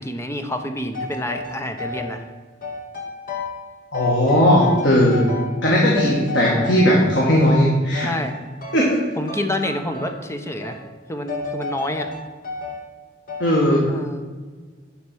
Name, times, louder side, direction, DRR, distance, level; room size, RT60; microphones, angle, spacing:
voice 1, 0.0-2.2 6.5-6.7 8.0-8.3 9.2-10.8 11.1-12.1 13.8-14.2, left 1 dB, 15° left, 6 dB, 0.8 m, -28 dB
sound 1, 0.9-2.2 2.6-3.7 3.9-5.7 5.9-7.5 7.9-9.0 9.3-10.3 10.6-10.9 11.3-12.9 13.3-13.6, left 3 dB, 50° left, 1.5 m, -32 dB
voice 2, 3.9-5.2 5.6-8.1 8.7-9.0 13.4-13.8, equal, 90° left, -4 dB, 1.9 m, -17 dB
10.5 x 4.4 x 6.2 m, 1.4 s
head